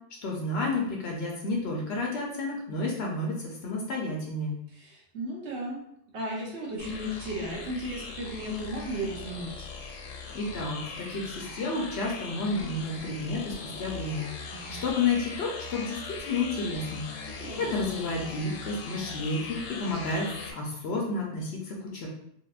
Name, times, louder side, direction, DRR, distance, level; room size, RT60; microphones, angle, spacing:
voice 1, 0.2-4.5 10.3-22.1, left 3 dB, 60° left, -1 dB, 0.8 m, -31 dB
voice 2, 4.7-5.8 6.1-9.7 14.5-14.8 17.4-17.7, equal, 60° right, -4 dB, 1.1 m, -35 dB
sound 1, 6.8-20.5, left 4 dB, 85° left, 1.0 m, -40 dB
3.3 x 2.8 x 2.4 m, 0.73 s
omnidirectional pair, 1.3 m